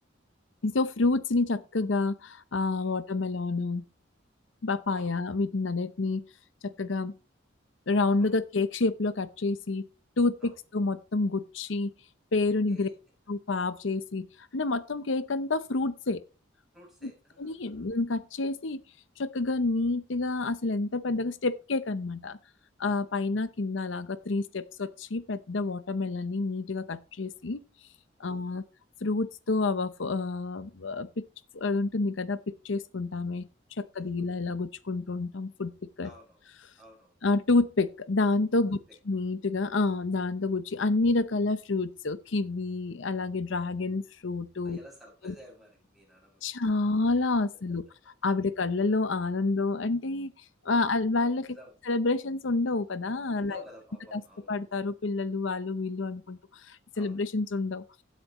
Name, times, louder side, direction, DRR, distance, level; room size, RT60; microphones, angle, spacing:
voice 1, 0.6-3.8 4.6-6.2 6.6-7.2 7.9-9.9 10.2-11.9 12.3-12.9 13.3-16.2 17.4-18.8 19.2-22.4 22.8-27.6 28.2-28.6 29.0-31.2 31.5-33.5 33.8-35.7 36.0-36.1 37.2-38.8 39.1-44.8 45.2-45.3 46.4-47.8 48.2-51.5 51.9-53.6 54.1-54.2 54.5-57.8, left 3 dB, 70° left, 0.7 m, -28 dB
voice 2, 16.7-17.9 28.2-28.6 33.9-34.0 36.0-36.4 36.8-37.1 38.6-38.7 44.6-46.5 51.5-51.7 53.3-54.6 56.9-57.2, equal, ahead, 6.5 m, -53 dB
16.0 x 8.4 x 3.1 m
head